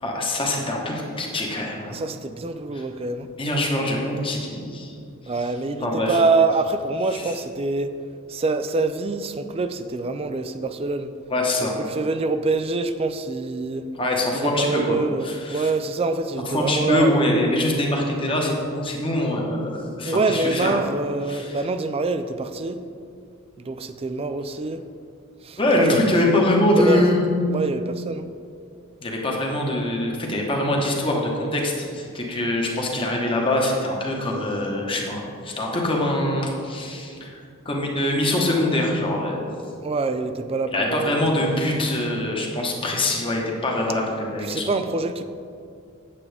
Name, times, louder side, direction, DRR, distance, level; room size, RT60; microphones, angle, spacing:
voice 1, 0.0-2.0 2.7-2.8 3.4-4.9 5.8-6.2 7.1-7.3 11.3-11.8 13.9-15.0 15.2-15.7 16.4-20.8 21.3-21.6 25.6-27.2 29.0-37.4 37.6-39.5 40.7-44.7, left 1 dB, 25° left, -1 dB, 1.2 m, -23 dB
voice 2, 1.9-3.3 5.3-7.9 8.3-11.1 11.6-13.8 14.3-17.3 20.0-22.8 23.6-24.8 25.4-26.4 26.7-27.1 27.5-28.3 39.8-41.8 44.4-45.2, right 3 dB, 25° right, 10 dB, 0.4 m, -25 dB
8.4 x 8.2 x 3.4 m, 2.4 s
head